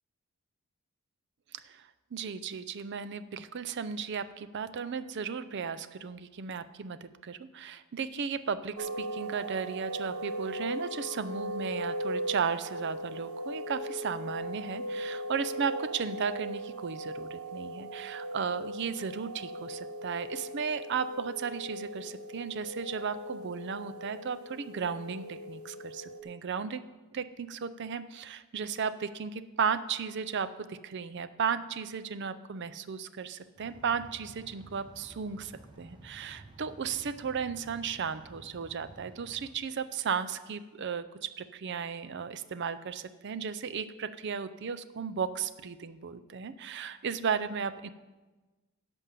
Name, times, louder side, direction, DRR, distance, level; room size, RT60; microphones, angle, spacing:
voice 1, 1.5-26.8 27.1-35.5 35.8-47.9, right 6 dB, 50° right, 13 dB, 0.5 m, -35 dB
sound 1, 8.8-26.2, right 1 dB, 75° right, 1.0 m, -38 dB
sound 2, 33.6-39.5, right 1 dB, 20° right, 1.4 m, -53 dB
11.0 x 5.3 x 7.5 m, 1.2 s
head